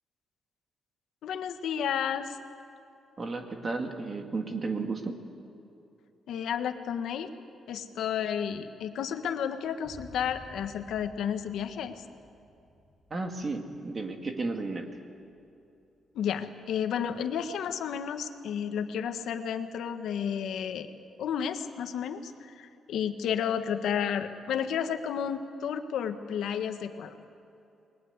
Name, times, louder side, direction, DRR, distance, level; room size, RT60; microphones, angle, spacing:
voice 1, 1.2-2.4 6.3-7.3 7.7-12.0 16.1-20.9 21.2-27.1, left 8 dB, 80° left, 8 dB, 1.5 m, -32 dB
voice 2, 3.2-5.1 13.1-14.9, right 3 dB, 25° right, 4 dB, 2.2 m, -33 dB
sound 1, 9.8-17.2, left 1 dB, 25° left, 7.5 m, -55 dB
29.0 x 21.5 x 8.2 m, 2.8 s
wide cardioid pair, 175°, 0 cm